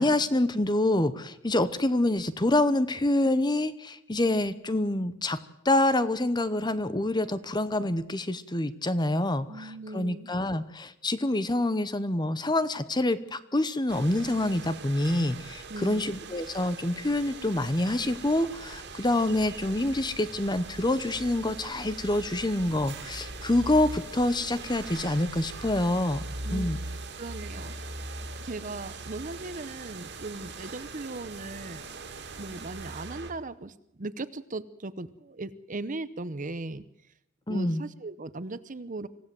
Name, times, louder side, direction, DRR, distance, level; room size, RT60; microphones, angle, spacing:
voice 1, 0.0-5.4 5.6-26.2 26.5-26.8 37.5-37.8, left 1 dB, 20° left, 14 dB, 0.9 m, -26 dB
voice 2, 9.5-10.3 15.7-16.1 26.4-26.7 27.2-27.7 28.4-31.8 32.4-36.8 37.5-39.1, right 2 dB, 40° right, 14 dB, 0.8 m, -38 dB
sound 1, 13.9-33.3, right 3 dB, 55° right, 2.5 m, -41 dB
25.5 x 16.0 x 7.7 m, 0.83 s
head